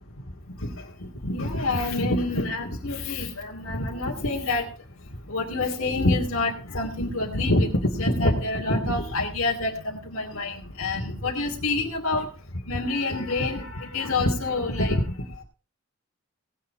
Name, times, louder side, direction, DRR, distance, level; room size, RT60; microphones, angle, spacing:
voice 1, 0.6-4.7 5.3-12.3 12.7-15.0, left 2 dB, 75° left, -4 dB, 2.7 m, -26 dB
19.0 x 7.7 x 4.7 m, 0.34 s
head